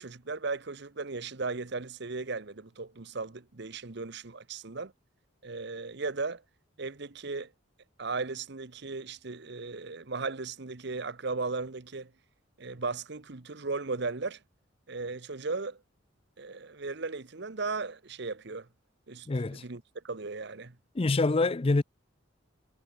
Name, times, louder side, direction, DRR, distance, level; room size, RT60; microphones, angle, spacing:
voice 1, 0.0-4.9 5.4-6.4 6.8-7.5 8.0-12.1 12.6-14.4 14.9-15.8 16.4-18.7 19.1-20.8, right 3 dB, 60° right, 1.1 m, -36 dB
voice 2, 19.3-19.6 20.9-21.8, left 3 dB, 30° left, 0.5 m, -26 dB
head